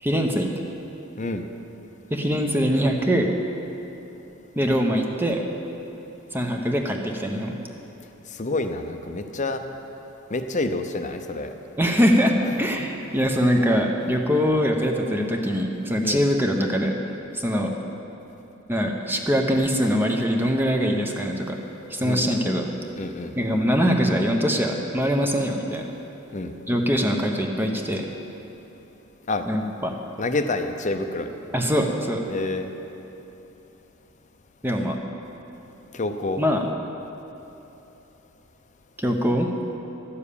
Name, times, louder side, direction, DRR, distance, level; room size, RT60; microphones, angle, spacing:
voice 1, 0.0-0.5 2.1-3.3 4.5-5.4 6.3-7.5 11.8-16.9 17.3-17.7 18.7-21.6 21.9-22.7 23.4-25.9 26.7-28.0 29.5-29.9 31.5-32.2 34.6-35.0 36.4-36.6 39.0-39.5, equal, 10° right, 2 dB, 0.8 m, -23 dB
voice 2, 8.3-9.6 10.3-11.5 12.4-12.6 16.0-16.3 22.0-22.3 23.0-23.4 26.3-26.5 29.3-29.4 30.2-31.4 32.3-32.7 35.9-36.4, left 2 dB, 35° left, 7 dB, 0.7 m, -28 dB
12.5 x 7.1 x 8.5 m, 3.0 s
head